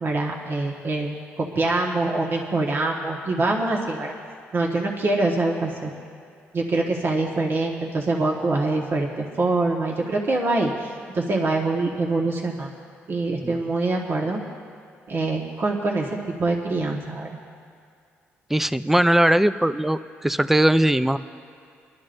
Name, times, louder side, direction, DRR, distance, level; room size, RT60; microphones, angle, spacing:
voice 1, 0.0-4.1 4.5-5.9 6.5-12.7 13.1-14.4 15.1-17.4, right 2 dB, 50° right, -1 dB, 1.3 m, -24 dB
voice 2, 18.5-21.2, right 1 dB, 5° right, 12 dB, 0.4 m, -20 dB
24.5 x 12.0 x 2.6 m, 2.3 s
cardioid pair, 80°, 5 cm